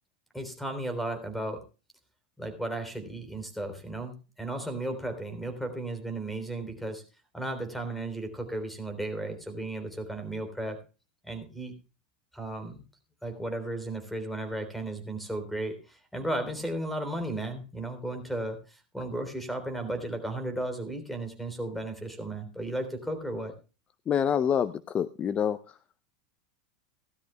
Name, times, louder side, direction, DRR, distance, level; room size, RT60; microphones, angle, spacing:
voice 1, 0.3-1.6 2.4-7.0 7.3-10.8 11.2-11.7 12.3-12.8 13.2-23.5, right 1 dB, ahead, 9 dB, 3.6 m, -35 dB
voice 2, 24.1-25.8, left 8 dB, 30° left, 15 dB, 0.6 m, -27 dB
17.0 x 13.0 x 2.2 m, 0.32 s
supercardioid pair, 120°, 4 cm